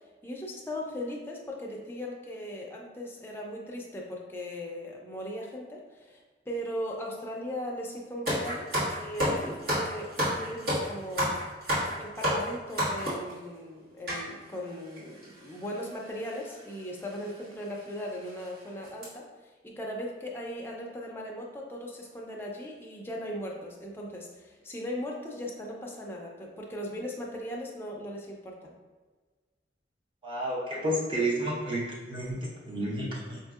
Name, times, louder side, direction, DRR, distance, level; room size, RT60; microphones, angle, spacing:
voice 1, 0.2-11.4 12.0-28.7, equal, 15° left, -2 dB, 0.5 m, -38 dB
sound 1, 8.3-13.3 14.1-14.2 15.0-15.1 15.2-15.4 16.4-16.6 17.1-17.2 17.7-17.8 18.2-18.5 18.8-19.0, equal, 60° right, 1.4 m, -29 dB
voice 2, 30.2-33.4, right 1 dB, 30° right, -5 dB, 0.8 m, -31 dB
5.0 x 2.7 x 2.4 m, 1.3 s
head